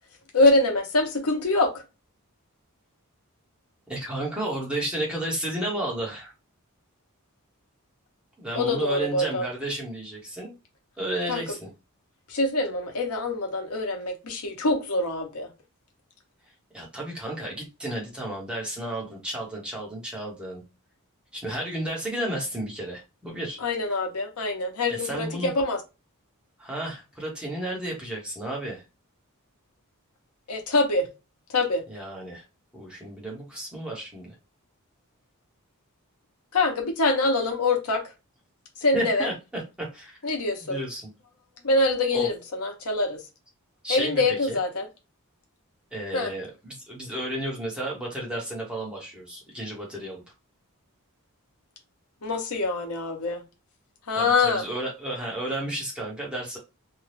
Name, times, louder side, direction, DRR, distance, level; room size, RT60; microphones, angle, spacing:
voice 1, 0.3-1.8 8.5-9.5 11.3-11.4 12.3-15.5 23.6-25.8 30.5-31.1 31.5-31.8 36.5-38.0 38.8-39.3 40.2-40.8 41.6-43.2 43.9-44.9 46.1-46.3 52.2-53.4 54.1-54.6, left 2 dB, 80° left, 0.9 m, -24 dB
voice 2, 3.9-6.3 8.4-10.5 11.0-11.7 16.7-20.6 21.3-23.6 24.9-25.5 26.6-28.8 31.9-32.4 32.7-34.3 38.9-40.2 40.7-41.1 42.1-42.3 43.8-44.6 45.9-50.2 54.1-56.6, right 1 dB, 5° right, 1.0 m, -32 dB
2.7 x 2.3 x 3.2 m
head